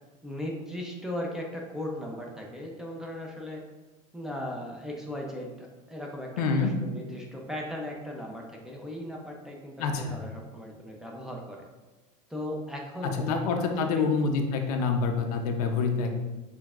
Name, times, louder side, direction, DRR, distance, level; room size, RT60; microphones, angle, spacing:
voice 1, 0.2-3.6 4.1-11.6 12.3-14.0, left 1 dB, 5° right, -1 dB, 0.6 m, -37 dB
voice 2, 6.4-6.7 9.8-10.2 13.0-16.2, left 4 dB, 90° left, 4 dB, 0.7 m, -27 dB
6.2 x 3.4 x 2.5 m, 1.1 s
supercardioid pair, 150°, 19 cm